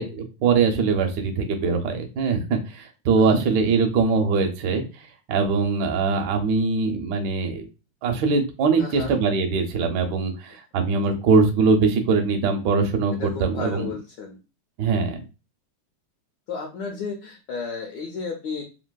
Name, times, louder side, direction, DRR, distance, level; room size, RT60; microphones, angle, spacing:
voice 1, 0.0-4.8 5.3-7.6 8.0-13.9 14.8-15.2, right 4 dB, 75° right, 3 dB, 1.1 m, -22 dB
voice 2, 3.2-3.5 8.8-9.1 13.2-14.4 16.5-18.6, left 4 dB, 75° left, 0 dB, 1.1 m, -33 dB
3.3 x 2.5 x 2.2 m, 0.30 s
omnidirectional pair, 2.3 m